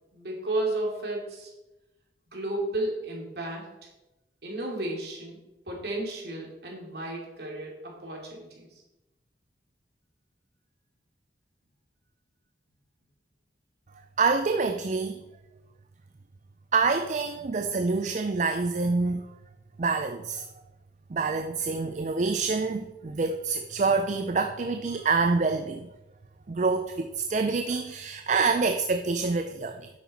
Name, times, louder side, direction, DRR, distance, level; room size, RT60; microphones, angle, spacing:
voice 1, 0.1-1.5 2.3-3.7 4.4-5.4 5.7-8.7, right 1 dB, 60° right, -1 dB, 2.7 m, -33 dB
voice 2, 14.2-15.2 16.7-19.3 19.8-20.5 21.1-25.9 26.5-29.9, right 4 dB, 40° right, 7 dB, 0.4 m, -26 dB
10.0 x 8.3 x 4.2 m, 1.0 s
head